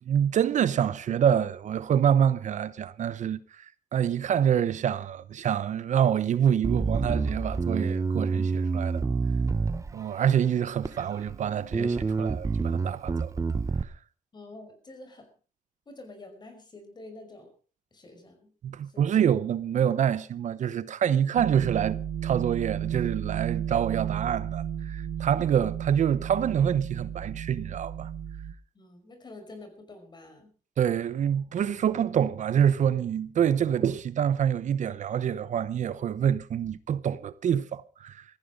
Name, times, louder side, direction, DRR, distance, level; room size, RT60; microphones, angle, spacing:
voice 1, 0.1-9.1 9.9-13.3 13.8-13.9 18.6-22.0 22.2-28.1 30.8-38.2, right 9 dB, 60° right, 0.8 m, -26 dB
Bass guitar, 6.6-10.2 10.8-11.4 11.7-13.8, right 4 dB, 20° right, 0.9 m, -27 dB
voice 2, 14.3-15.3 15.9-17.5 17.9-18.5 18.8-19.1 25.2-25.4 28.7-30.5, left 2 dB, 30° left, 5.5 m, -47 dB
sound 1, 21.4-28.5, right 9 dB, 85° right, 1.0 m, -33 dB
16.5 x 14.5 x 5.1 m
wide cardioid pair, 150°, 14 cm